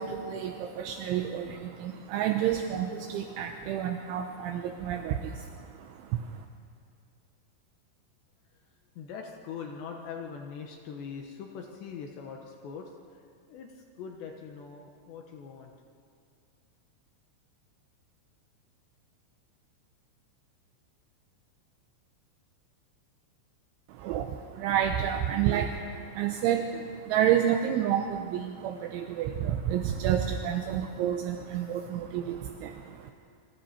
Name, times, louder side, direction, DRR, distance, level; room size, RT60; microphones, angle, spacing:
voice 1, 0.0-6.5 23.9-33.1, right 9 dB, 80° right, 5 dB, 3.1 m, -30 dB
voice 2, 9.0-13.2 13.5-15.7, left 6 dB, 70° left, 2 dB, 3.1 m, -42 dB
27.5 x 26.0 x 4.4 m, 2.4 s
omnidirectional pair, 5.9 m